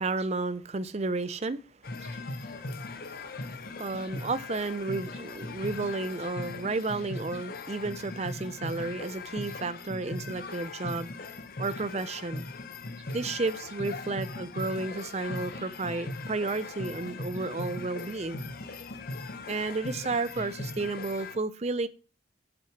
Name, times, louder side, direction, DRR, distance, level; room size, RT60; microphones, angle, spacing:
voice 1, 0.0-1.6 2.0-2.2 3.0-3.5 3.8-11.1 11.6-12.5 13.1-18.4 19.5-21.9, right 3 dB, 35° right, 14 dB, 0.5 m, -32 dB
sound 1, 1.8-21.4, left 2 dB, 50° left, 0.8 m, -39 dB
7.9 x 6.0 x 5.9 m, 0.37 s
head